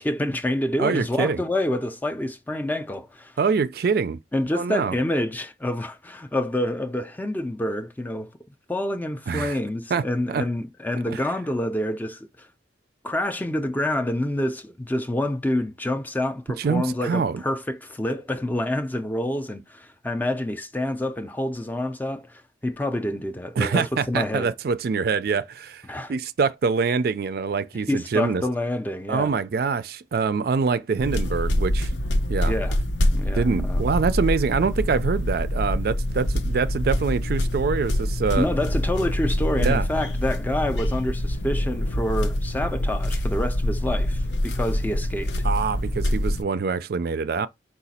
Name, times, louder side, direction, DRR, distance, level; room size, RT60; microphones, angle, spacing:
voice 1, 0.0-3.4 4.3-8.3 8.7-12.5 13.0-24.5 25.9-26.1 27.9-29.3 32.5-32.8 33.1-33.8 38.4-45.3, left 1 dB, 10° left, 0.4 m, -27 dB
voice 2, 0.8-1.4 3.4-4.2 4.5-4.9 9.3-9.6 9.9-10.0 10.3-10.4 11.1-11.2 16.6-17.4 23.6-25.8 26.1-28.4 29.1-31.9 32.3-32.5 33.3-38.5 39.6-39.9 45.4-47.5, right 5 dB, 60° right, 0.4 m, -24 dB
sound 1, 31.0-46.4, left 1 dB, 90° left, 0.7 m, -25 dB
4.9 x 2.4 x 4.1 m
head